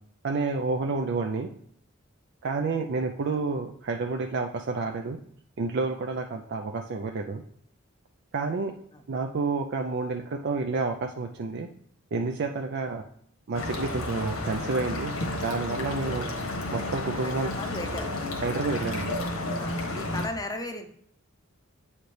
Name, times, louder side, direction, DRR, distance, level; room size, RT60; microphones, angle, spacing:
voice 1, 0.2-1.5 2.4-5.2 5.6-7.4 8.3-8.7 9.1-11.7 12.1-13.0 13.5-15.1 15.4-16.3 16.7-17.5 18.4-19.2, right 4 dB, 55° right, 4 dB, 0.4 m, -29 dB
sound 1, 13.5-20.3, left 2 dB, 85° left, 1.5 m, -32 dB
voice 2, 17.2-18.1 18.3-18.4 19.6-20.9, left 2 dB, 20° left, 5 dB, 0.6 m, -36 dB
7.9 x 4.3 x 3.2 m, 0.66 s
head